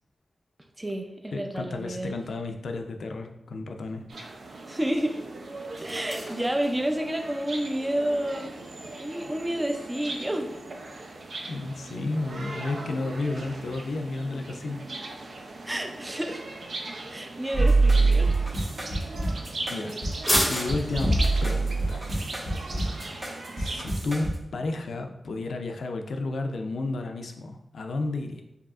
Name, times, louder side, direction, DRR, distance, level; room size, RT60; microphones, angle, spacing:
voice 1, 0.8-2.2 4.7-5.1 5.8-8.5 9.0-10.5 15.7-16.4 17.1-18.3, right 1 dB, 15° right, 4 dB, 0.4 m, -30 dB
voice 2, 1.3-4.1 11.5-14.9 19.7-20.0 20.5-21.1 21.4-22.1 23.6-24.3 24.5-28.4, left 2 dB, 85° left, 5 dB, 0.4 m, -32 dB
sound 1, 3.8-23.4, equal, ahead, 1.0 m, -39 dB
sound 2, 4.1-23.9, right 2 dB, 65° right, 0.5 m, -39 dB
sound 3, 17.5-24.4, right 2 dB, 35° right, 1.2 m, -24 dB
4.7 x 2.8 x 2.4 m, 0.87 s
wide cardioid pair, 100°, 0 cm